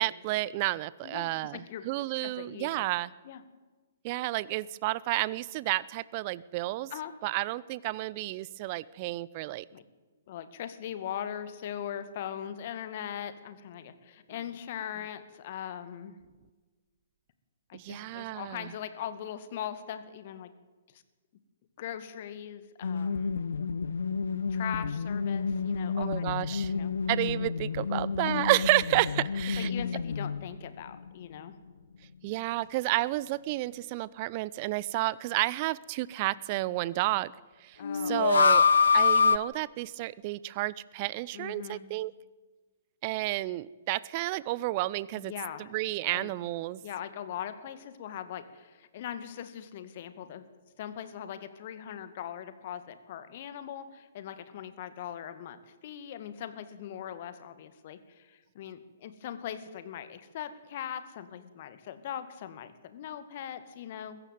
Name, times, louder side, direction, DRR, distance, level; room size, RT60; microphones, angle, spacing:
voice 1, 0.0-3.1 4.0-6.9 7.2-9.6 17.7-18.7 26.0-26.7 27.1-29.7 32.2-37.3 37.6-37.8 38.1-38.6 38.9-42.1 43.0-45.3 45.7-46.8, right 18 dB, 40° right, 20 dB, 0.6 m, -31 dB
voice 2, 1.0-1.9 2.2-2.9 3.2-3.4 6.9-7.2 9.7-9.9 10.3-16.2 17.7-20.5 20.9-21.0 21.8-23.4 24.5-26.3 26.7-26.9 28.3-28.5 29.6-31.6 37.8-38.6 41.3-42.0 45.2-45.7 46.0-46.3 46.8-50.5 50.8-64.2, left 9 dB, 50° left, 12 dB, 2.0 m, -40 dB
sound 1, 22.8-30.6 30.9-31.0 37.8-39.4, left 5 dB, 70° left, 0.8 m, -27 dB
21.5 x 15.0 x 9.4 m, 1.3 s
figure-of-eight pair, 120°, 0 cm